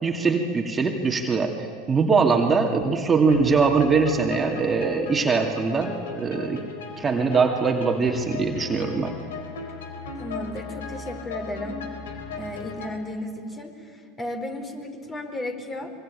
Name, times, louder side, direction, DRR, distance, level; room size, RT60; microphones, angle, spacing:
voice 1, 0.0-6.6 7.0-9.1, right 4 dB, 20° right, 2 dB, 2.4 m, -22 dB
sound 1, 3.3-12.9, left 5 dB, 75° left, 3.9 m, -37 dB
voice 2, 10.2-11.8 12.4-15.9, left 1 dB, 25° left, 5 dB, 4.7 m, -34 dB
25.5 x 23.5 x 9.0 m, 2.3 s
hypercardioid pair, 85°, 0 cm